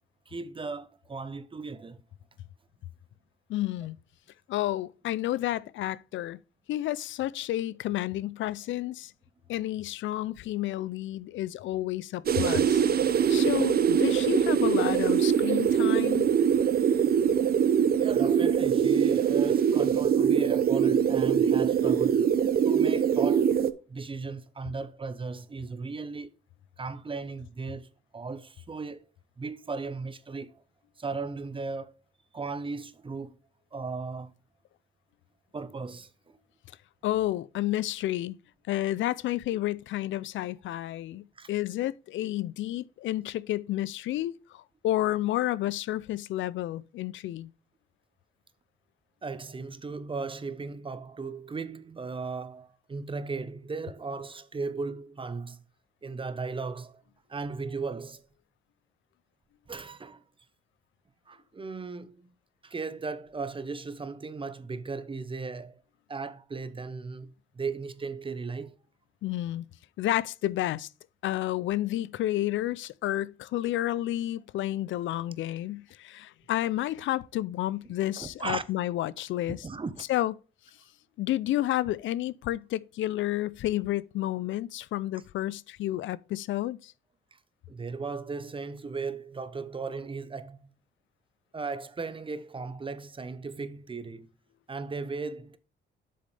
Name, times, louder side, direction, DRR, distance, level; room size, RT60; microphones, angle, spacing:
voice 1, 0.3-2.0 18.0-22.3 22.6-23.5 23.9-26.3 26.8-27.9 28.1-29.1 29.4-30.6 31.0-32.0 32.3-33.4 33.7-34.3 35.5-36.4 41.4-41.5 49.2-55.6 56.0-57.0 57.3-58.2 59.7-60.2 61.3-62.3 62.6-65.8 66.1-68.8 78.2-78.6 79.5-80.0 87.3-87.4 87.7-90.7 91.5-94.3 94.7-95.6, right 4 dB, 25° right, 0.9 m, -36 dB
voice 2, 3.5-4.0 4.5-6.4 6.7-9.1 9.5-12.8 13.3-16.3 37.0-38.4 38.7-47.5 69.2-69.6 70.0-70.9 71.2-79.6 80.1-80.3 81.2-86.9, left 14 dB, 75° left, 0.5 m, -30 dB
sound 1, 12.3-23.7, right 8 dB, 50° right, 0.7 m, -23 dB
8.0 x 6.5 x 3.4 m
cardioid pair, 90°, 20 cm